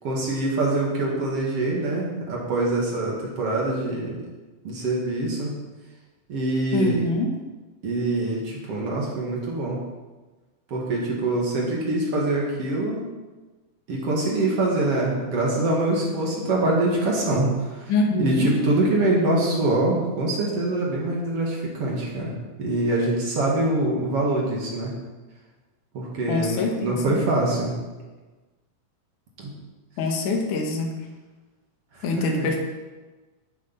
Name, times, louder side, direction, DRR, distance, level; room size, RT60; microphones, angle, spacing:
voice 1, 0.0-4.2 4.6-5.5 6.3-7.1 7.8-9.8 10.7-13.0 13.9-17.9 18.2-22.3 22.6-24.9 25.9-27.8 29.4-29.5 31.9-32.6, right 2 dB, 50° right, -3 dB, 2.8 m, -24 dB
voice 2, 6.7-7.3 17.9-18.5 26.3-27.2 30.0-30.9 32.0-32.6, left 3 dB, 70° left, 3 dB, 2.8 m, -24 dB
12.5 x 7.3 x 5.6 m, 1.2 s
omnidirectional pair, 3.9 m